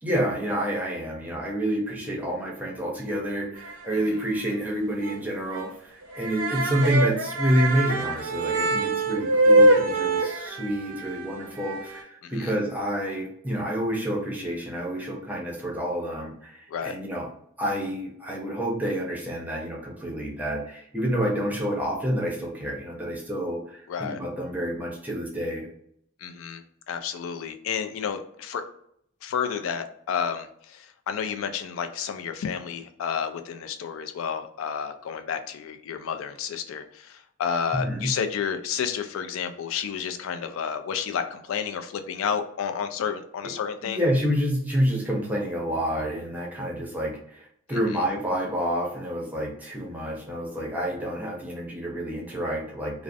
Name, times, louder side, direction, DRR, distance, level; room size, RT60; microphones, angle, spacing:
voice 1, 0.0-17.3 17.6-25.7 37.7-38.1 43.4-43.5 43.8-53.0, equal, 10° right, -2 dB, 0.6 m, -28 dB
sound 1, 3.6-4.2 4.5-4.6 5.0-5.2 5.5-5.7 6.0-12.0, right 2 dB, 80° right, 0.5 m, -24 dB
voice 2, 12.2-12.5 16.7-16.9 23.9-24.2 26.2-28.6 29.2-44.0 47.7-47.8, left 7 dB, 75° left, 8 dB, 0.3 m, -31 dB
2.4 x 2.0 x 2.5 m, 0.68 s
head